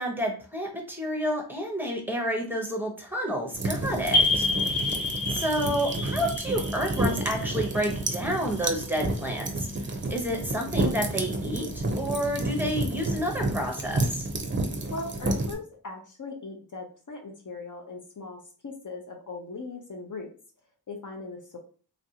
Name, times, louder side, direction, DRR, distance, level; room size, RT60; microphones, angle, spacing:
voice 1, 0.0-4.5 5.3-9.7 10.1-14.3, equal, 5° right, 0 dB, 0.9 m, -30 dB
sound 1, 3.5-15.5, right 2 dB, 30° right, 0.5 m, -30 dB
sound 2, 4.1-8.6, left 2 dB, 75° left, 1.2 m, -29 dB
voice 2, 14.7-20.3 20.9-21.6, left 3 dB, 50° left, 2 dB, 0.6 m, -39 dB
3.1 x 2.5 x 2.8 m, 0.40 s
wide cardioid pair, 85°, 39 cm